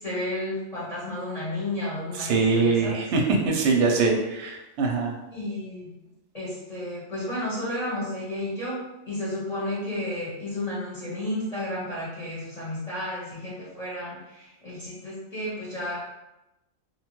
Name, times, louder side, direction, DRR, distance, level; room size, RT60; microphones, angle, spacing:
voice 1, 0.0-3.0 5.3-5.9 6.3-16.0, left 1 dB, 35° left, -8 dB, 0.7 m, -32 dB
voice 2, 2.1-5.1, right 4 dB, 65° right, 1 dB, 0.8 m, -23 dB
2.7 x 2.2 x 2.9 m, 0.97 s
omnidirectional pair, 1.4 m